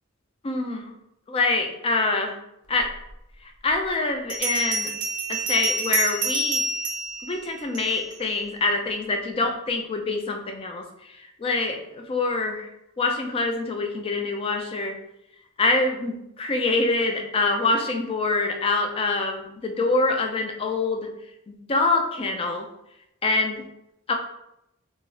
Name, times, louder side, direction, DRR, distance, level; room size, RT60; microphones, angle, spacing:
voice 1, 0.4-0.9 1.3-2.4 2.7-2.9 3.4-4.9 5.3-6.6 7.2-12.7 13.0-14.9 15.6-21.1 21.5-22.7 23.2-23.6 24.1-24.2, left 3 dB, 25° left, 4 dB, 0.3 m, -25 dB
Bell, 3.1-3.2 4.3-8.2, right 3 dB, 40° right, 0.4 m, -28 dB
2.3 x 2.0 x 3.7 m, 0.81 s
head